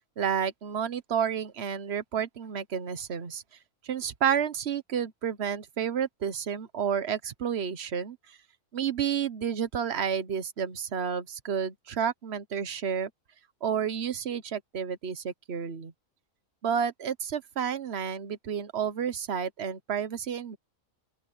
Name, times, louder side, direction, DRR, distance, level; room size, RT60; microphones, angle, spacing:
voice 1, 0.2-3.4 3.8-8.4 8.7-13.1 13.6-15.9 16.6-20.6, right 8 dB, 55° right, 1.3 m, -30 dB
open air
omnidirectional pair, 1.4 m